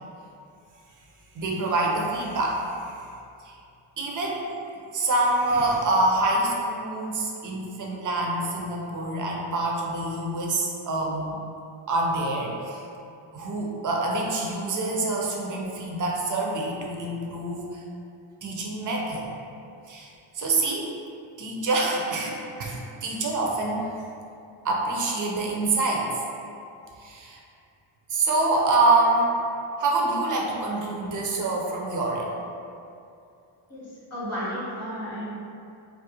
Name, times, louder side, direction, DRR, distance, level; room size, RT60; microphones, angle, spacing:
voice 1, 1.4-2.9 3.4-3.5 4.0-4.5 4.9-11.4 11.9-12.8 13.3-17.8 18.4-19.3 19.9-20.1 20.3-20.9 21.4-23.9 24.6-26.1 27.0-27.4 28.1-29.3 29.8-32.4, right 2 dB, 40° right, -1 dB, 0.5 m, -26 dB
voice 2, 34.1-35.3, equal, 30° left, -9 dB, 0.7 m, -32 dB
2.4 x 2.1 x 2.8 m, 2.6 s
cardioid pair, 80°, 49 cm